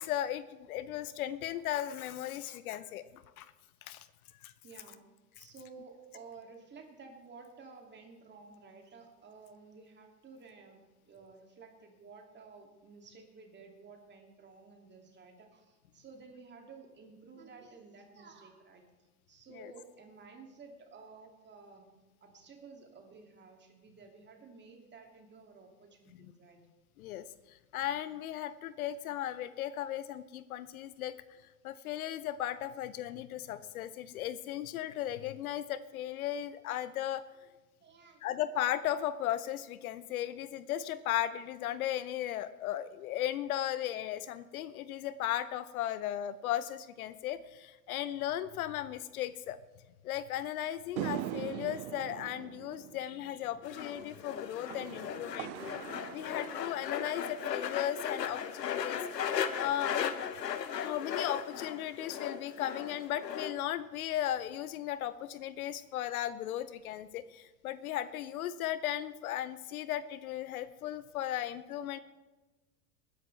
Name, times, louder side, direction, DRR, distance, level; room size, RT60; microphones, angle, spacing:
voice 1, 0.0-3.5 3.8-4.1 4.4-4.5 19.6-19.7 26.2-26.3 27.0-31.1 31.6-37.2 38.2-49.6 50.0-55.5 56.1-60.1 60.8-72.0, left 12 dB, 60° left, 15 dB, 0.7 m, -36 dB
voice 2, 4.6-5.0 5.4-18.9 19.3-21.9 22.2-26.7 37.8-38.3, right 4 dB, 20° right, 2 dB, 2.5 m, -53 dB
sound 1, 51.0-57.5, right 15 dB, 45° right, 0.5 m, -42 dB
sound 2, 53.6-63.5, left 8 dB, 85° left, 1.0 m, -37 dB
20.0 x 10.0 x 3.3 m, 1.1 s
hypercardioid pair, 90°, 48 cm